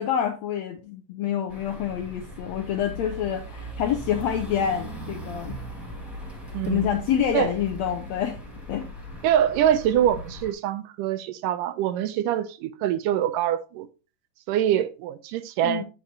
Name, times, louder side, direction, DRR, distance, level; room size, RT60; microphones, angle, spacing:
voice 1, 0.0-5.6 6.7-8.4 8.7-8.9 15.6-15.8, left 9 dB, 80° left, 1.5 m, -27 dB
sound 1, 1.5-10.5, equal, ahead, 1.8 m, -38 dB
voice 2, 6.5-6.9 7.3-7.5 9.2-13.9 14.5-15.8, right 11 dB, 90° right, 2.2 m, -24 dB
8.6 x 6.7 x 2.8 m
omnidirectional pair, 3.8 m